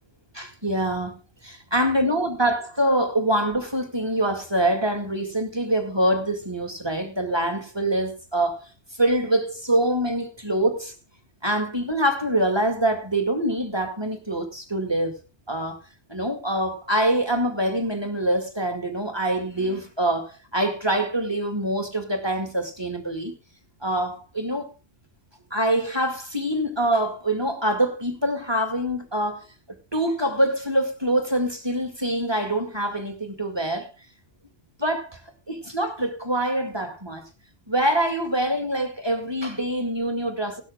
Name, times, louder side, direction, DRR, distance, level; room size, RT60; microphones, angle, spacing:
voice 1, 0.3-1.1 1.4-10.9 11.4-15.2 15.5-15.8 16.1-23.3 23.8-24.7 25.5-29.5 29.9-33.9 34.8-35.2 35.5-37.2 37.7-40.6, right 1 dB, 20° right, 2.1 m, -25 dB
18.5 x 12.5 x 2.3 m
omnidirectional pair, 1.2 m